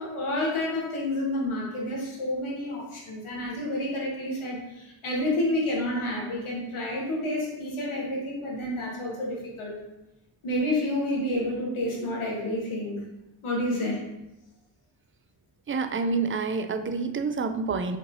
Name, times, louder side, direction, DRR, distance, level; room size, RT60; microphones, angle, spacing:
voice 1, 0.0-9.7 10.4-13.0 13.4-14.0, left 1 dB, 85° left, -3 dB, 1.3 m, -29 dB
voice 2, 15.7-18.0, right 4 dB, 30° right, 8 dB, 0.3 m, -28 dB
5.1 x 3.2 x 2.6 m, 0.91 s
cardioid pair, 50°, 49 cm